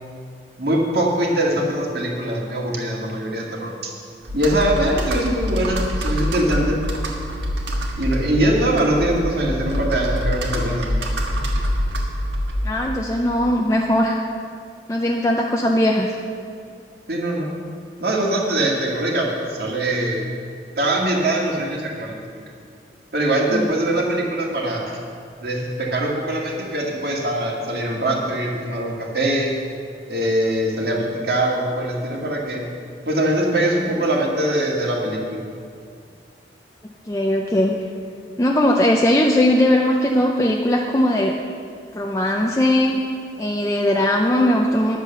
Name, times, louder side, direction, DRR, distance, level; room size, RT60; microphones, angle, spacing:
voice 1, 0.6-3.9 4.3-6.8 8.0-10.9 17.1-17.5 18.0-20.3 20.8-22.5 23.1-24.8 25.4-29.6 30.1-32.6 33.1-35.4, right 1 dB, 60° right, -2 dB, 2.0 m, -22 dB
Computer keyboard, 4.2-12.9, equal, 85° right, 1.6 m, -25 dB
voice 2, 12.6-14.2 14.9-16.1 23.5-23.7 37.1-37.8 38.4-41.4 41.9-43.0 43.4-45.0, left 1 dB, 15° left, 0 dB, 0.5 m, -19 dB
10.5 x 7.2 x 7.0 m, 2.2 s
head